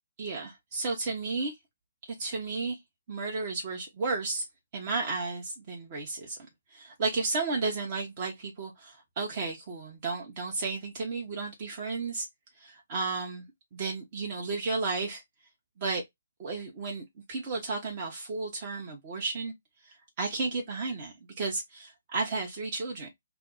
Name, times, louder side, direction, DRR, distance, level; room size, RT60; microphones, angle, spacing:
voice 1, 0.2-1.5 2.2-2.8 3.1-4.4 4.7-6.4 6.7-12.3 12.6-13.4 13.7-15.2 15.8-16.0 16.4-19.5 19.8-23.1, right 3 dB, 40° right, 0.9 m, -33 dB
3.3 x 2.0 x 3.8 m
figure-of-eight pair, 135°, 0 cm